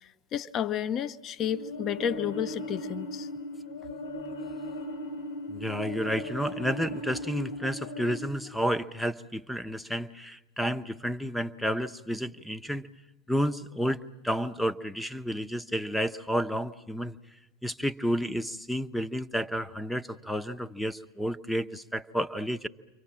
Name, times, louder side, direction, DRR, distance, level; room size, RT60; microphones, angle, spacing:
voice 1, 0.0-3.3, left 9 dB, 40° left, 0.9 m, -31 dB
sound 1, 1.4-8.2, left 1 dB, 75° left, 4.3 m, -38 dB
voice 2, 5.5-12.9 13.3-14.0 14.2-17.2 17.6-22.7, equal, 5° left, 0.9 m, -31 dB
29.0 x 24.5 x 7.5 m
hypercardioid pair, 85°, 0 cm